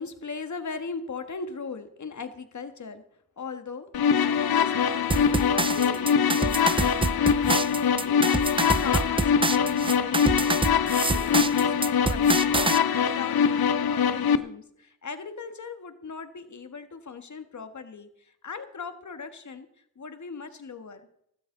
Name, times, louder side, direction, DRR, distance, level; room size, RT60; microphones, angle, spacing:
voice 1, 0.0-3.0 3.4-8.5 8.8-21.1, left 4 dB, 50° left, 9 dB, 1.7 m, -39 dB
sound 1, 3.9-14.4, left 7 dB, 70° left, 0.9 m, -23 dB
sound 2, 5.1-12.8, right 3 dB, 15° right, 0.5 m, -27 dB
16.0 x 13.0 x 3.9 m, 0.74 s
cardioid pair, 70°, 38 cm